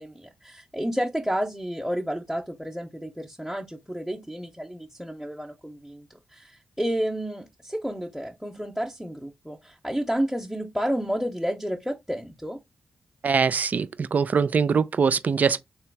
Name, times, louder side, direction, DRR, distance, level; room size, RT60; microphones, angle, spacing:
voice 1, 0.0-12.6, equal, ahead, 0.9 m, -31 dB
voice 2, 13.2-15.6, right 5 dB, 60° right, 0.5 m, -23 dB
3.3 x 2.9 x 4.6 m
cardioid pair, 65°, 3 cm